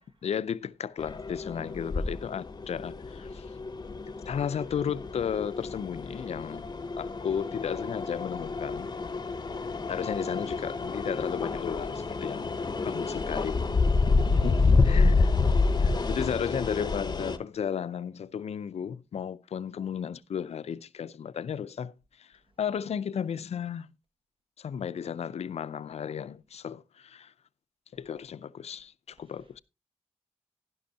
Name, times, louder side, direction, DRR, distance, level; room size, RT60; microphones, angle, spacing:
voice 1, 0.0-3.4 4.3-6.7 7.0-8.9 9.9-12.5 12.8-13.6 14.1-14.2 14.4-15.4 15.8-21.9 22.2-23.9 24.6-27.3 27.9-29.6, left 8 dB, 65° left, 0.5 m, -34 dB
sound 1, 1.0-17.4, left 3 dB, 35° left, 0.7 m, -28 dB
voice 2, 14.1-15.1 15.9-16.3, right 3 dB, 50° right, 1.4 m, -43 dB
11.5 x 11.0 x 2.8 m
wide cardioid pair, 90°, 11 cm